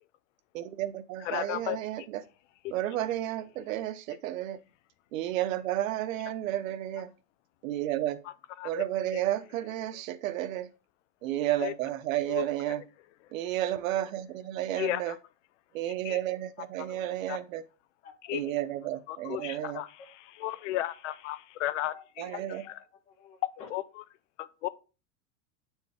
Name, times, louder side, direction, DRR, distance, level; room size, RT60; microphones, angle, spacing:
voice 1, 0.5-2.2 2.7-4.6 5.1-7.1 7.6-8.2 8.6-10.7 11.2-12.8 13.3-15.1 15.7-17.6 18.3-19.8 22.2-22.6, right 13 dB, 80° right, 0.9 m, -32 dB
voice 2, 1.2-1.8 8.6-8.7 9.1-9.2 11.6-11.7 12.3-12.5 14.8-15.1 16.0-16.2 16.9-17.0 17.3-17.4 18.3-18.4 19.1-22.8 23.7-24.0 24.4-24.7, left 15 dB, 65° left, 0.7 m, -34 dB
voice 3, 19.3-19.8 21.9-22.0 22.5-22.7 23.1-23.7, left 6 dB, 20° left, 0.4 m, -51 dB
8.9 x 4.5 x 3.5 m
supercardioid pair, 175°, 39 cm